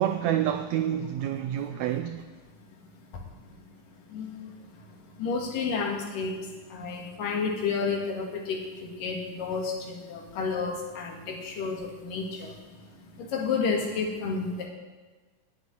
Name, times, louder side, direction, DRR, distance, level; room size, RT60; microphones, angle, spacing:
voice 1, 0.0-2.3, right 11 dB, 90° right, 1.5 m, -28 dB
voice 2, 5.2-6.3 6.7-8.6 9.0-9.7 10.1-12.5 13.3-14.7, left 5 dB, 80° left, 3.7 m, -30 dB
11.0 x 8.7 x 9.7 m
omnidirectional pair, 3.8 m